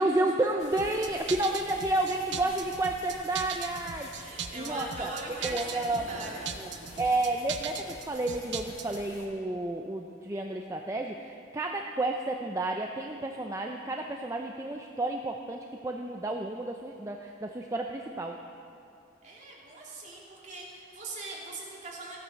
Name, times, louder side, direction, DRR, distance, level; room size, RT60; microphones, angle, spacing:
voice 1, 0.0-5.1 5.4-6.0 6.6-6.7 7.0-18.4, right 2 dB, 15° right, 2 dB, 0.5 m, -31 dB
sound 1, 0.6-9.3, left 2 dB, 70° left, 2.0 m, -50 dB
sound 2, 0.8-9.0, right 7 dB, 70° right, 0.7 m, -39 dB
voice 2, 4.2-6.4 19.2-22.2, right 2 dB, 40° right, -4 dB, 2.8 m, -41 dB
15.0 x 8.9 x 6.4 m, 2.6 s
head